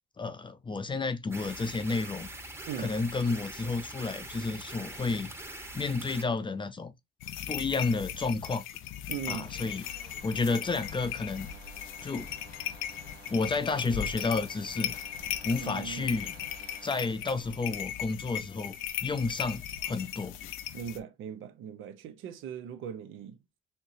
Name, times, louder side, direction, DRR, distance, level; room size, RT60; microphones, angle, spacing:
voice 1, 0.2-2.3 2.8-5.3 5.7-6.9 7.5-8.6 9.3-9.9 10.2-11.5 12.0-12.3 13.3-15.0 15.4-16.3 16.8-20.4, left 3 dB, 25° left, 0.5 m, -31 dB
sound 1, 1.3-6.2, right 1 dB, 10° right, 0.9 m, -43 dB
sound 2, 7.2-21.0, left 10 dB, 90° left, 0.5 m, -38 dB
voice 2, 9.1-9.5 15.6-16.1 20.7-23.4, right 8 dB, 85° right, 0.6 m, -39 dB
sound 3, 9.4-17.1, right 5 dB, 55° right, 1.0 m, -53 dB
4.4 x 2.9 x 2.6 m
cardioid pair, 90°, 20 cm